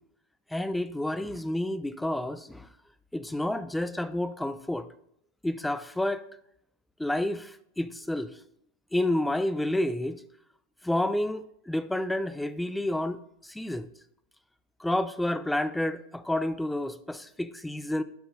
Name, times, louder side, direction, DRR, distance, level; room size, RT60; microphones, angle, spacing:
voice 1, 0.5-2.7 3.1-4.9 5.4-6.2 7.0-8.3 8.9-10.2 10.8-13.2 13.5-13.9 14.8-18.0, left 1 dB, 5° left, 0.3 m, -29 dB
12.0 x 5.3 x 2.6 m
figure-of-eight pair, 90°, 0 cm